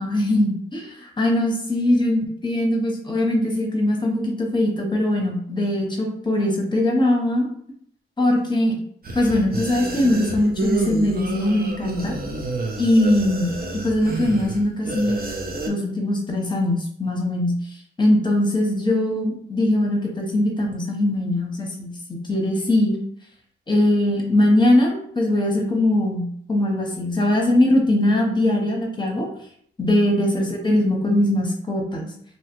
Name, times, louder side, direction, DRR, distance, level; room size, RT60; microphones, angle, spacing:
voice 1, 0.0-7.5 8.2-8.7 9.1-12.1 12.8-13.5 13.8-15.2 15.7-17.5 18.0-23.0 23.7-29.3 29.8-32.1, left 1 dB, 20° left, 1 dB, 0.8 m, -21 dB
sound 1, 9.0-15.7, right 2 dB, 45° right, 0.6 m, -29 dB
2.7 x 2.3 x 3.0 m, 0.64 s
cardioid pair, 65°, 21 cm